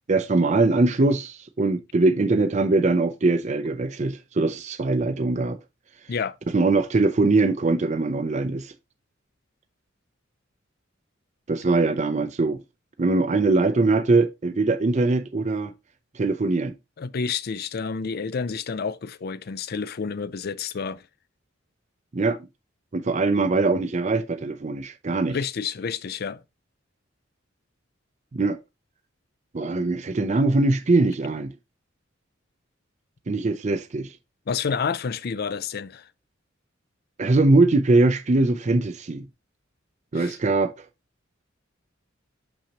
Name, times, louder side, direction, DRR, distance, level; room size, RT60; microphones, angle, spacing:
voice 1, 0.1-5.6 6.5-8.7 11.5-12.6 13.0-15.7 16.1-16.7 22.1-22.4 22.9-25.4 28.3-28.6 29.5-31.5 33.3-34.1 37.2-39.3 40.1-40.9, right 3 dB, 35° right, 0.5 m, -22 dB
voice 2, 17.0-21.0 25.3-26.4 34.5-36.1 40.1-40.4, left 5 dB, 50° left, 0.4 m, -29 dB
6.3 x 5.9 x 2.9 m
head